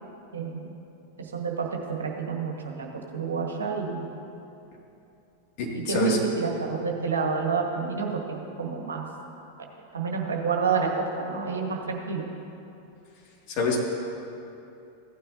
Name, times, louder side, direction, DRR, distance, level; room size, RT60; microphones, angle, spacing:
voice 1, 0.3-0.7 1.2-1.7 2.0-4.1 5.7-9.0 9.9-12.3, right 5 dB, 65° right, 1 dB, 1.5 m, -29 dB
voice 2, 5.6-6.2 13.5-13.8, left 4 dB, 40° left, -3 dB, 2.3 m, -26 dB
15.5 x 9.4 x 2.8 m, 2.7 s
figure-of-eight pair, 90°, 0 cm